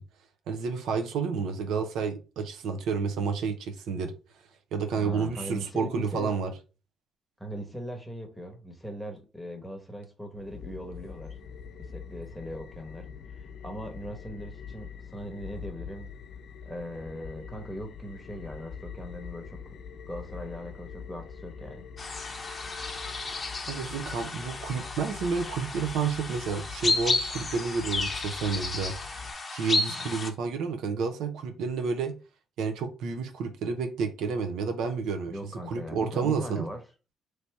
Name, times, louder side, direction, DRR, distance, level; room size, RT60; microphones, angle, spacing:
voice 1, 0.5-4.1 4.7-6.5 23.7-29.0 29.5-32.2 32.6-35.3 35.6-36.7, right 5 dB, 85° right, 0.6 m, -30 dB
voice 2, 4.9-6.4 7.4-11.4 11.8-16.1 16.6-19.8 20.1-21.9 29.9-30.1 35.3-36.8, equal, ahead, 1.1 m, -40 dB
sound 1, 10.3-29.3, left 6 dB, 70° left, 0.5 m, -44 dB
sound 2, 22.0-30.3, left 3 dB, 30° left, 0.8 m, -32 dB
3.2 x 2.8 x 4.5 m
cardioid pair, 90°, 0 cm